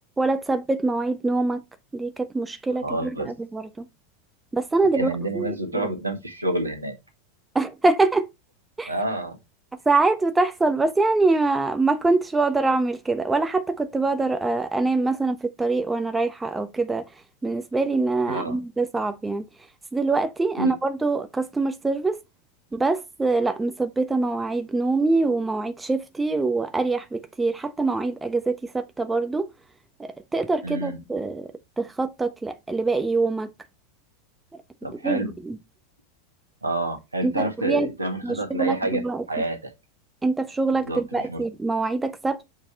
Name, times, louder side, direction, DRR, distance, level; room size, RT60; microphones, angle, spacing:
voice 1, 0.2-1.6 1.9-3.9 4.5-5.9 7.5-8.3 8.8-8.9 9.8-17.1 17.4-19.5 19.9-22.2 22.7-29.5 30.0-31.5 31.8-33.5 35.0-35.6 37.2-37.9 38.2-39.3 40.2-42.4, right 3 dB, 10° right, 0.9 m, -24 dB
voice 2, 2.8-3.3 4.9-6.9 8.9-9.4 18.3-18.6 20.6-20.7 30.6-31.0 34.8-35.3 36.6-39.0 39.3-39.7 40.9-41.0 41.3-41.4, right 1 dB, 85° right, 1.6 m, -28 dB
7.3 x 4.7 x 3.4 m
figure-of-eight pair, 85°, 0 cm